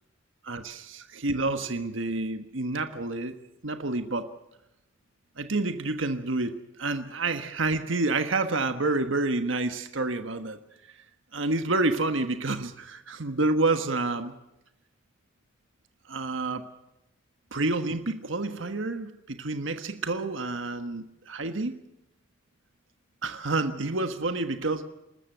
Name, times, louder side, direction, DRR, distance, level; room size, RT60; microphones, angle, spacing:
voice 1, 0.4-3.4 3.6-4.3 5.4-10.6 11.3-14.4 16.1-16.6 17.5-21.7 23.2-24.8, right 2 dB, 75° right, 8 dB, 1.4 m, -28 dB
27.0 x 13.5 x 7.9 m, 0.89 s
head